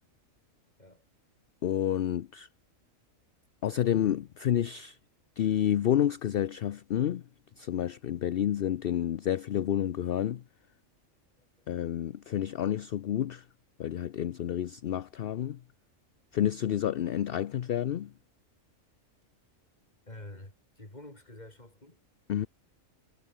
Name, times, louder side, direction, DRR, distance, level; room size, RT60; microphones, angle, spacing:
voice 1, 1.6-2.5 3.6-5.0 5.4-7.2 7.6-10.4 11.7-13.5 13.8-15.6 16.3-18.1 22.3-22.5, left 10 dB, 55° left, 0.7 m, -29 dB
voice 2, 11.4-11.7 20.1-22.0, left 1 dB, 30° left, 4.1 m, -48 dB
omnidirectional pair, 1.4 m